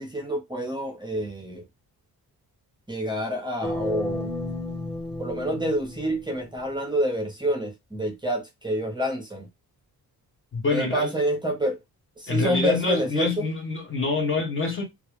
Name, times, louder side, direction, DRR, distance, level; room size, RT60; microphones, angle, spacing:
voice 1, 0.0-1.6 2.9-4.4 5.2-9.5 10.7-11.8 12.2-13.5, equal, 10° right, 0.6 m, -28 dB
sound 1, 3.6-6.7, left 1 dB, 15° left, 1.1 m, -33 dB
voice 2, 10.5-11.2 12.3-14.8, left 3 dB, 35° left, 0.7 m, -26 dB
2.4 x 2.1 x 3.0 m
cardioid pair, 105°, 37 cm